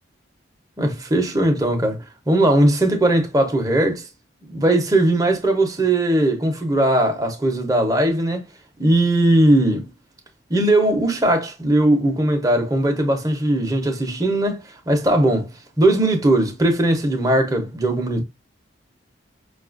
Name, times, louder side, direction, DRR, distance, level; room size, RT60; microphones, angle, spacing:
voice 1, 0.8-4.1 4.5-8.4 8.8-9.9 10.5-15.5 15.8-18.2, right 1 dB, 20° right, 0.8 m, -19 dB
5.3 x 2.4 x 2.5 m
head